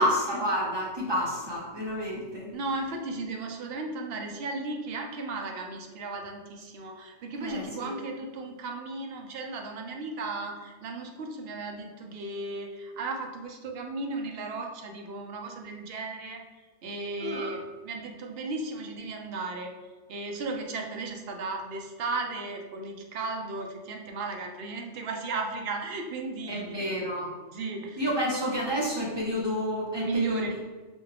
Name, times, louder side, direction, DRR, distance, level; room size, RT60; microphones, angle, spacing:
voice 1, 0.0-2.5 7.4-7.9 17.2-17.6 26.5-27.3 28.0-30.6, equal, 25° right, -4 dB, 0.6 m, -29 dB
voice 2, 2.5-16.4 16.8-19.7 20.1-26.9 27.5-28.0 30.0-30.6, right 3 dB, 60° right, 2 dB, 0.7 m, -35 dB
4.3 x 2.3 x 3.3 m, 1.3 s
omnidirectional pair, 1.3 m